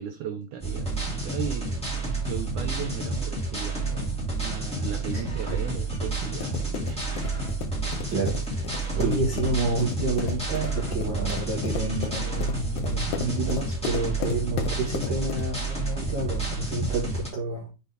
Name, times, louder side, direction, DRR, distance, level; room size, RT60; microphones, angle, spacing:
voice 1, 0.0-7.0 8.9-9.4 16.8-16.9, right 8 dB, 80° right, 1.8 m, -36 dB
sound 1, 0.6-17.3, right 2 dB, ahead, 1.9 m, -30 dB
sound 2, 5.9-15.6, left 9 dB, 85° left, 1.7 m, -36 dB
voice 2, 8.1-8.7 8.9-17.7, right 2 dB, 45° right, 1.6 m, -29 dB
8.0 x 4.2 x 3.4 m
omnidirectional pair, 4.3 m